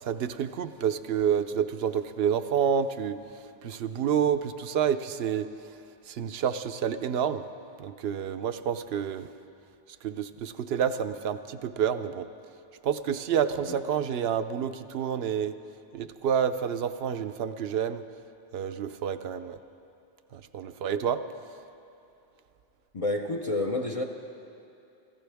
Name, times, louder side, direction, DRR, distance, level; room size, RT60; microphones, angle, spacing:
voice 1, 0.0-5.5 6.1-7.5 7.8-9.3 10.0-12.3 12.8-15.6 15.9-18.0 18.5-19.6 20.3-21.2, right 8 dB, 80° right, 11 dB, 0.8 m, -29 dB
voice 2, 22.9-24.0, left 2 dB, 40° left, 2 dB, 0.8 m, -29 dB
25.5 x 15.0 x 3.5 m, 2.8 s
omnidirectional pair, 1.0 m